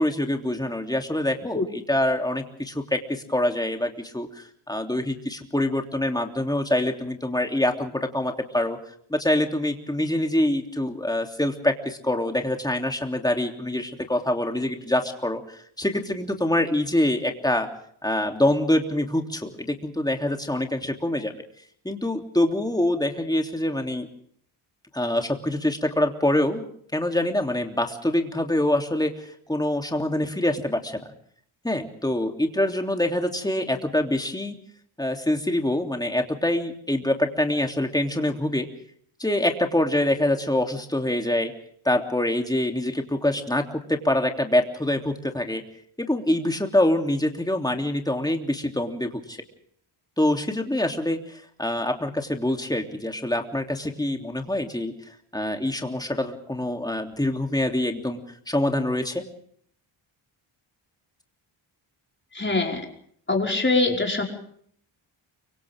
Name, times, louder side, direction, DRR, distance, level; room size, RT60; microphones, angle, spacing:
voice 1, 0.0-8.8 9.1-17.7 18.0-21.3 21.8-24.1 24.9-26.7 26.9-31.0 31.6-34.6 35.0-38.7 39.2-41.5 41.8-45.6 46.0-49.4 50.2-54.9 55.3-58.2 58.5-59.2, left 1 dB, 10° left, 3 dB, 3.2 m, -25 dB
voice 2, 62.3-62.9 63.3-64.2, left 3 dB, 25° left, 1 dB, 5.3 m, -23 dB
29.5 x 25.0 x 3.7 m, 0.64 s
wide cardioid pair, 105°, 48 cm